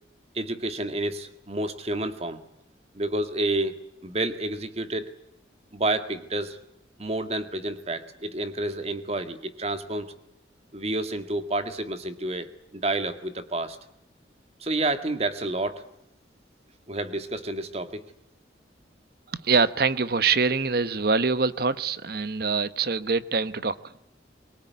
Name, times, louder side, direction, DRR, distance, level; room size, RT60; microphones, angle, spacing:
voice 1, 0.3-2.4 2.9-3.7 4.0-5.1 5.7-6.6 7.0-10.2 10.7-12.5 12.7-13.8 14.6-15.8 16.9-18.0, right 2 dB, 35° right, 9 dB, 1.9 m, -29 dB
voice 2, 19.3-23.8, right 4 dB, 55° right, 15 dB, 1.0 m, -24 dB
23.0 x 22.0 x 9.5 m, 0.79 s
head